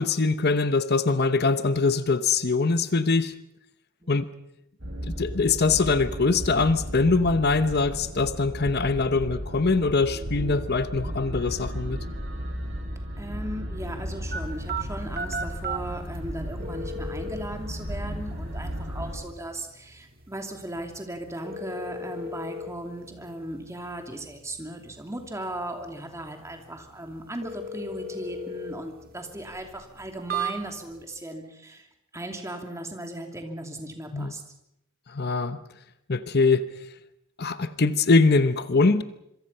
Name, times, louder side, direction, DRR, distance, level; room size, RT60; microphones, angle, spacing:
voice 1, 0.0-3.3 4.1-4.3 5.2-12.0 34.1-34.3 35.1-35.6 36.1-36.7 37.4-39.0, left 3 dB, 50° left, 12 dB, 0.9 m, -23 dB
sound 1, 4.8-19.1, equal, 60° right, 6.7 m, -34 dB
voice 2, 13.2-31.9 32.1-34.4, right 1 dB, 15° right, 4 dB, 2.8 m, -37 dB
sound 2, 14.3-31.0, right 2 dB, 45° right, 2.1 m, -38 dB
26.0 x 23.5 x 5.6 m, 0.80 s
head